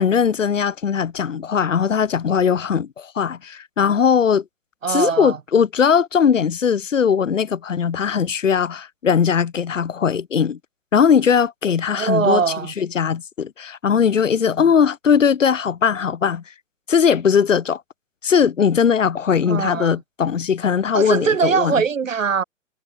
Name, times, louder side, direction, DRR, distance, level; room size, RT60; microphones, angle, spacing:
voice 1, 0.0-4.4 4.9-10.6 10.9-12.4 12.8-16.4 16.9-17.8 18.2-21.8, left 7 dB, 75° left, 1.6 m, -19 dB
voice 2, 4.8-5.4 12.0-12.7 19.5-20.0 20.9-22.4, right 6 dB, 80° right, 1.6 m, -21 dB
figure-of-eight pair, 125°, 38 cm